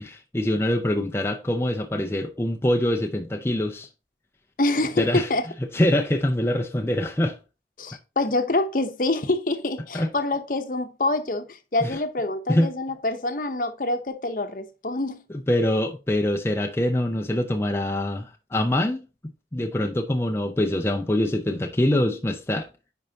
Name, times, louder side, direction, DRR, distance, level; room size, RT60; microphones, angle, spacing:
voice 1, 0.0-3.9 5.0-5.3 5.6-7.4 9.9-10.1 11.8-12.0 12.5-12.7 15.5-19.1 19.5-22.7, left 1 dB, 15° left, 0.5 m, -24 dB
voice 2, 4.6-5.5 7.8-15.2, left 2 dB, 50° left, 0.8 m, -26 dB
10.0 x 4.5 x 2.8 m
head